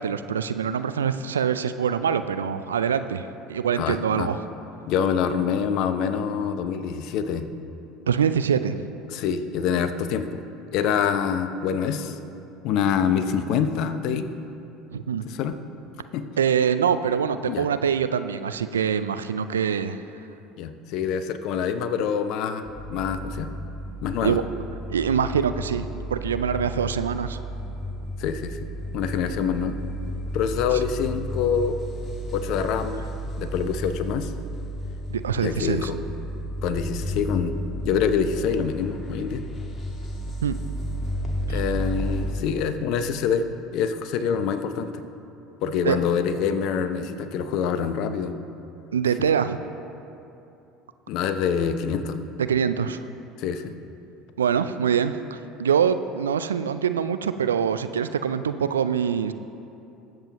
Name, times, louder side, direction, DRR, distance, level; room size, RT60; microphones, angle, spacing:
voice 1, 0.0-4.4 8.0-8.9 14.9-15.3 16.4-20.0 24.2-24.4 24.9-27.4 35.1-35.9 40.4-40.6 41.5-41.6 45.8-46.0 48.9-49.6 52.4-53.0 54.4-59.3, right 7 dB, 85° right, 11 dB, 0.4 m, -24 dB
voice 2, 3.8-4.3 4.9-7.5 9.1-10.4 10.7-12.2 12.6-14.3 15.3-15.5 16.1-16.3 17.5-17.7 20.6-22.6 22.9-23.5 24.0-24.4 28.2-28.6 28.9-29.8 30.3-31.8 32.3-33.0 33.4-34.3 35.4-36.0 36.6-37.6 37.8-39.4 41.5-43.4 43.7-45.0 45.6-48.3 51.1-52.2 53.4-53.7, left 7 dB, 60° left, 10 dB, 0.7 m, -25 dB
sound 1, 22.6-42.3, equal, 30° left, 1.8 m, -33 dB
20.5 x 7.6 x 3.0 m, 2.8 s
hypercardioid pair, 70°, 0 cm